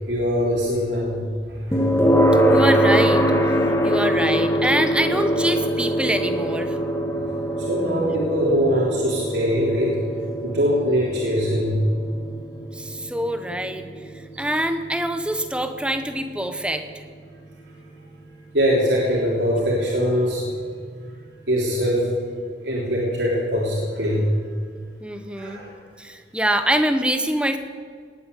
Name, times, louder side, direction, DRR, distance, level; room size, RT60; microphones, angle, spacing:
voice 1, 0.1-1.2 1.5-1.9 7.6-10.0 10.4-11.7 18.5-20.4 21.5-22.1 22.6-24.2 25.4-25.7, equal, 80° right, -5 dB, 3.5 m, -22 dB
sound 1, 1.7-16.7, equal, 15° left, 1.4 m, -23 dB
voice 2, 2.5-3.5 3.8-6.8 12.7-13.8 14.1-17.0 25.0-25.6 26.0-27.6, right 1 dB, 5° right, 8 dB, 1.0 m, -25 dB
18.5 x 9.2 x 8.3 m, 2.1 s
head